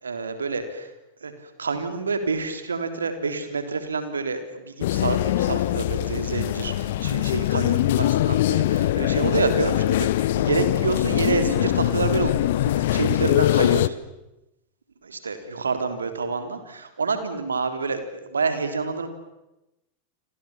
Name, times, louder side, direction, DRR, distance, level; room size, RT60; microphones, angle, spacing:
voice 1, 0.0-0.9 1.2-1.3 1.6-14.0 15.0-19.1, right 4 dB, 75° right, 8 dB, 3.5 m, -28 dB
sound 1, 4.8-13.9, left 14 dB, 55° left, 0.9 m, -22 dB
30.0 x 26.0 x 7.3 m, 0.95 s
figure-of-eight pair, 90°, 0 cm